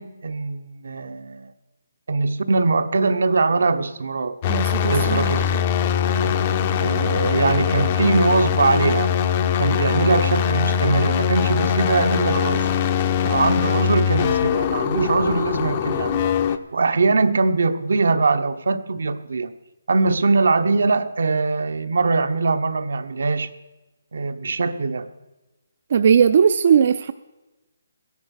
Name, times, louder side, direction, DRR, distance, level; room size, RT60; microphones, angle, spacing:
voice 1, 0.0-1.5 2.1-4.4 4.8-5.7 6.8-9.1 9.5-12.8 13.2-16.3 16.7-19.5 19.9-23.5 24.1-25.1, right 3 dB, 75° right, 9 dB, 0.9 m, -22 dB
sound 1, 4.4-16.6, left 8 dB, 25° left, 0.5 m, -22 dB
voice 2, 4.5-5.3 25.9-27.1, right 7 dB, 40° right, 11 dB, 0.4 m, -18 dB
15.0 x 10.5 x 6.3 m, 1.1 s
hypercardioid pair, 170°, 0 cm